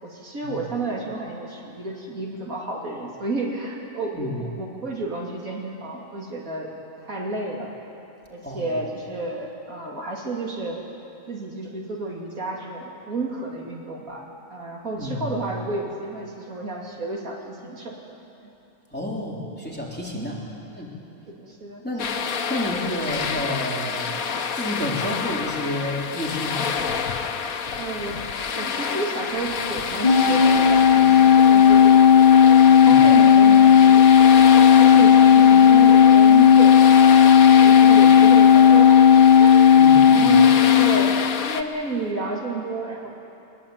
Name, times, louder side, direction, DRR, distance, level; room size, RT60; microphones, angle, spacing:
voice 1, 0.0-6.7 7.0-7.7 8.3-10.8 11.3-18.2 18.4-18.5 20.1-20.5 21.3-21.8 27.8-28.2 28.5-32.1 32.7-39.8 40.1-40.5 40.8-43.1, right 2 dB, 75° right, -2 dB, 3.1 m, -31 dB
voice 2, 8.4-9.0 14.9-15.4 18.9-20.4 20.7-20.9 21.8-22.2 22.5-24.1 24.5-26.6 32.8-33.0 39.7-40.6, left 1 dB, 5° left, -4 dB, 3.7 m, -30 dB
sound 1, 22.0-41.6, left 6 dB, 80° left, 1.4 m, -29 dB
Organ, 30.0-41.3, left 8 dB, 30° left, 2.0 m, -13 dB
22.5 x 21.5 x 8.9 m, 2.9 s
omnidirectional pair, 1.5 m